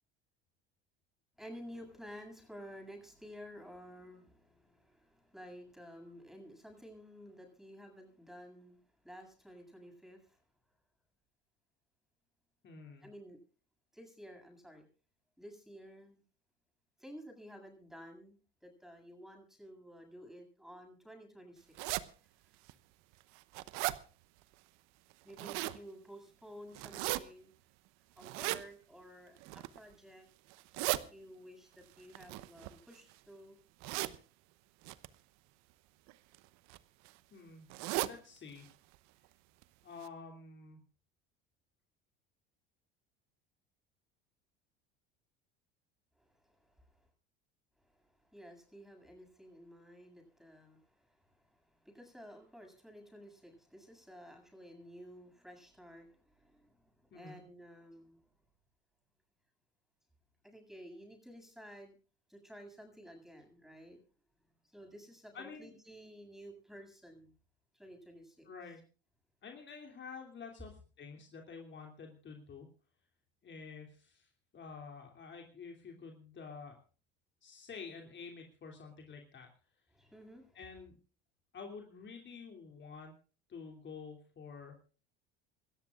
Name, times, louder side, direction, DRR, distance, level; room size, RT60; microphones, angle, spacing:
voice 1, 1.4-10.4 13.0-13.4 13.9-14.9 15.4-16.2 17.0-22.1 25.2-27.5 28.2-30.3 30.9-33.6 46.2-47.1 47.8-58.2 60.4-62.0 62.3-64.0 64.6-67.3 67.7-68.5 79.9-80.6, equal, ahead, 4 dB, 7.7 m, -53 dB
voice 2, 12.6-13.1 37.3-37.7 38.0-38.7 39.8-40.8 57.1-57.4 65.3-65.8 68.4-68.8 69.4-72.7 73.4-76.8 77.4-79.5 80.5-81.0 81.5-83.1 83.5-84.7, left 5 dB, 40° left, 2 dB, 3.1 m, -49 dB
sound 1, 21.8-22.0 22.7-22.8 23.2-24.0 25.1-25.8 26.7-27.2 28.2-28.6 29.4-29.8 30.5-31.0 32.1-33.1 33.8-34.2 34.8-35.1 36.1-36.4 36.7-36.8 37.0-37.1 37.7-38.1 38.6-38.7 38.9-39.0 39.6-39.7 40.0-40.1, right 19 dB, 65° right, 1.0 m, -36 dB
27.5 x 13.5 x 2.5 m, 0.38 s
hypercardioid pair, 75°, 30 cm